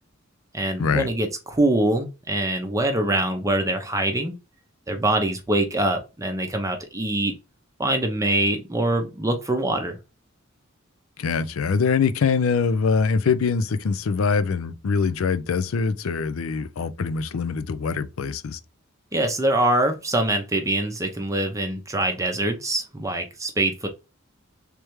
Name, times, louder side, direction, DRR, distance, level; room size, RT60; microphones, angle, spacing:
voice 1, 0.5-4.3 4.9-7.3 7.8-10.0 19.1-23.9, right 1 dB, 15° right, 0.6 m, -24 dB
voice 2, 11.2-18.6, left 5 dB, 85° left, 0.4 m, -23 dB
3.4 x 3.2 x 3.0 m
head